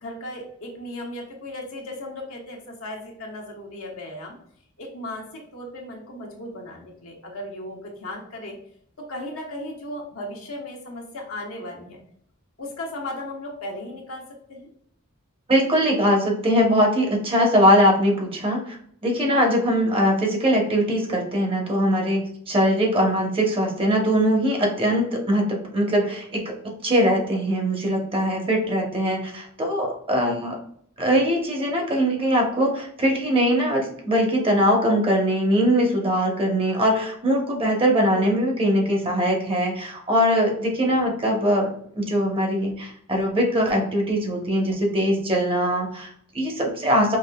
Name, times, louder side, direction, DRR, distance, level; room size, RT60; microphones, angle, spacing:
voice 1, 0.0-4.4 4.8-8.6 9.0-12.0 12.6-14.2 14.5-14.7 19.7-19.9 28.6-28.9 40.8-41.2, left 1 dB, 85° left, -1 dB, 1.0 m, -36 dB
voice 2, 15.5-18.8 19.0-26.5 26.8-30.6 31.0-41.7 42.0-47.2, equal, 25° right, 1 dB, 0.8 m, -21 dB
5.2 x 2.5 x 2.2 m, 0.66 s
head